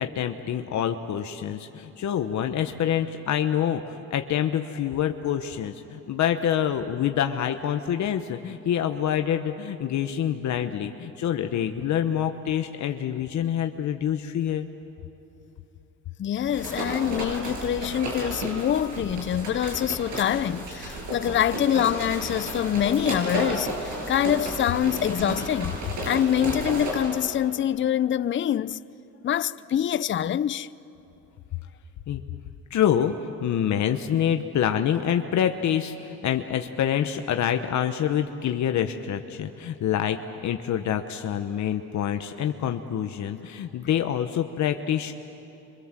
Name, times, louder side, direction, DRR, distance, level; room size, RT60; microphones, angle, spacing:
voice 1, 0.0-14.7 32.1-32.2 32.7-45.1, left 9 dB, 70° left, 1.1 m, -26 dB
voice 2, 16.2-25.8 26.1-28.8 29.2-30.7, left 10 dB, 40° left, 0.5 m, -25 dB
sound 1, 16.4-27.2, right 2 dB, 70° right, 7.8 m, -33 dB
28.0 x 25.0 x 7.5 m
cardioid pair, 90°, 30 cm